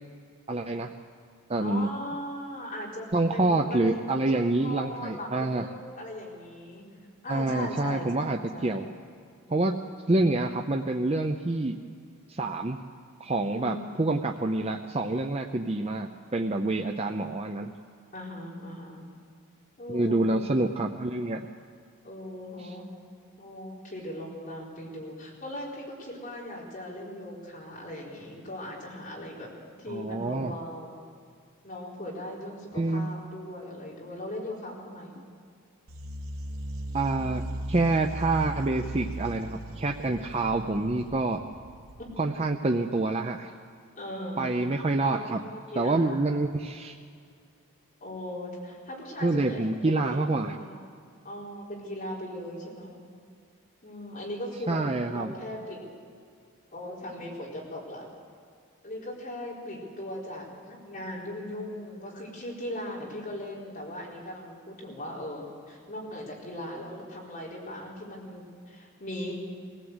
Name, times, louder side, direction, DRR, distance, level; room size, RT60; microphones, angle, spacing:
voice 1, 0.5-0.9 1.5-1.9 3.1-5.7 7.3-8.9 9.5-9.7 10.1-11.8 12.3-12.8 13.2-17.7 19.9-21.4 29.9-30.5 32.7-33.1 36.9-37.4 37.7-41.4 42.2-43.5 44.4-45.4 45.8-46.9 49.2-50.5 54.7-55.3, right 2 dB, 30° right, 4 dB, 0.6 m, -27 dB
voice 2, 1.6-6.8 7.2-8.7 13.5-13.8 18.1-19.0 19.8-20.4 22.0-22.8 23.4-29.5 29.8-31.0 31.6-35.1 42.0-42.1 43.9-44.5 45.0-46.2 48.0-49.7 50.0-50.9 51.2-53.0 53.8-55.9 56.7-58.1 58.8-69.3, left 1 dB, 40° left, -4 dB, 4.4 m, -39 dB
sound 1, 35.9-42.4, right 1 dB, 75° right, 1.4 m, -38 dB
23.0 x 16.0 x 8.0 m, 2.2 s
head